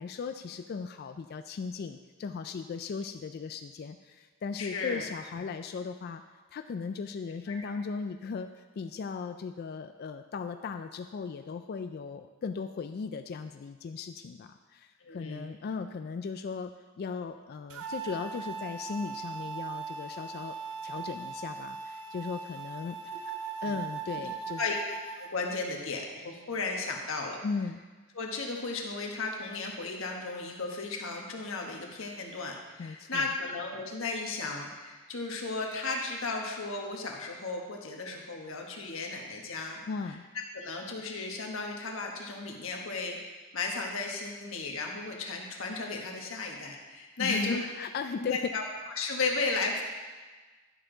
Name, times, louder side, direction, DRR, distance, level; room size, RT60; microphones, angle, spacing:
voice 1, 0.0-6.2 6.5-16.7 17.0-20.5 20.8-23.1 23.6-24.6 27.4-27.8 32.8-33.3 39.9-40.2 47.2-48.5, left 5 dB, 45° left, 9 dB, 0.3 m, -37 dB
voice 2, 4.6-5.1 7.5-7.7 15.0-15.6 23.6-23.8 24.2-24.3 24.6-24.7 25.2-27.4 28.1-39.8 40.5-43.2 43.5-47.6 48.2-48.6 49.0-49.8, left 3 dB, 60° left, 1 dB, 1.3 m, -35 dB
sound 1, 17.7-25.3, right 5 dB, 70° right, 0.8 m, -39 dB
11.0 x 6.6 x 3.8 m, 1.3 s
head